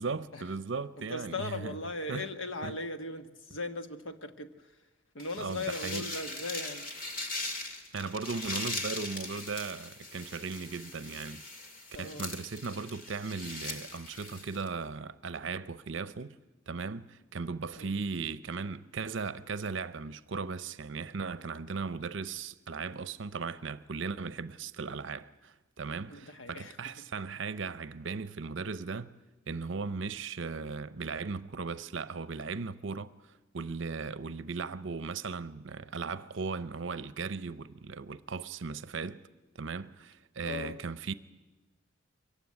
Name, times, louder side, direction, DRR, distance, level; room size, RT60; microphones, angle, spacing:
voice 1, 0.0-1.8 2.1-2.3 2.6-2.8 5.4-6.1 7.9-11.4 12.0-16.4 16.7-29.1 29.5-39.2 39.6-41.1, right 4 dB, 70° right, 0.6 m, -37 dB
voice 2, 1.0-4.7 5.1-6.9 11.9-12.2 17.8-17.9 26.1-26.9 40.4-40.8, left 2 dB, 80° left, 1.4 m, -38 dB
sound 1, 5.2-14.7, left 2 dB, 45° left, 2.2 m, -40 dB
23.5 x 15.0 x 9.7 m
head